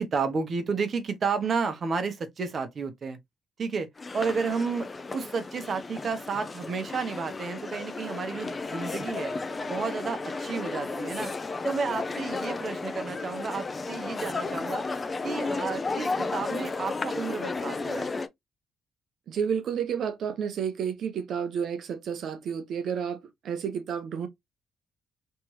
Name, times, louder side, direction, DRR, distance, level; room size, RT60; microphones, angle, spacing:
voice 1, 0.0-3.2 3.6-3.9 4.1-9.3 9.7-11.3 11.6-14.8 15.2-18.2, right 5 dB, 50° right, 1.1 m, -31 dB
sound 1, 4.0-18.3, left 3 dB, 30° left, 0.7 m, -33 dB
voice 2, 19.3-23.2 23.4-24.3, right 7 dB, 70° right, 0.8 m, -30 dB
3.3 x 3.0 x 3.1 m
cardioid pair, 90°, 0 cm